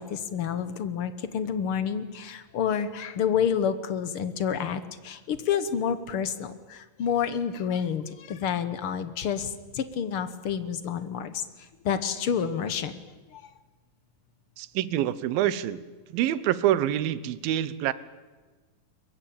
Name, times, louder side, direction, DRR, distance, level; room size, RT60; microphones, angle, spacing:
voice 1, 0.0-11.3 11.8-12.9 13.3-13.4, left 7 dB, 75° left, 12 dB, 1.2 m, -29 dB
voice 2, 14.6-15.8 16.1-17.9, right 12 dB, 85° right, 17 dB, 2.7 m, -26 dB
23.0 x 22.5 x 8.6 m, 1.3 s
omnidirectional pair, 4.1 m